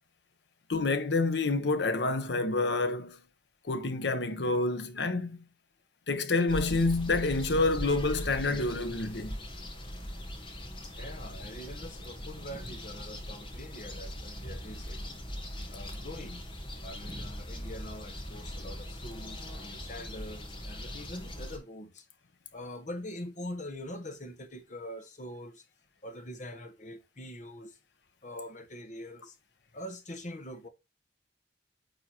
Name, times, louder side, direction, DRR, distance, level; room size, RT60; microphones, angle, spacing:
voice 1, 0.7-3.2 3.6-5.4 6.1-9.4, left 3 dB, 80° left, 0.9 m, -28 dB
sound 1, 6.5-21.6, equal, 30° left, 1.4 m, -40 dB
voice 2, 11.0-15.0 15.7-16.4 16.8-22.1 22.5-25.6 26.0-27.8 28.2-29.3 29.7-30.7, left 1 dB, 45° left, 1.2 m, -43 dB
9.0 x 3.7 x 2.9 m
head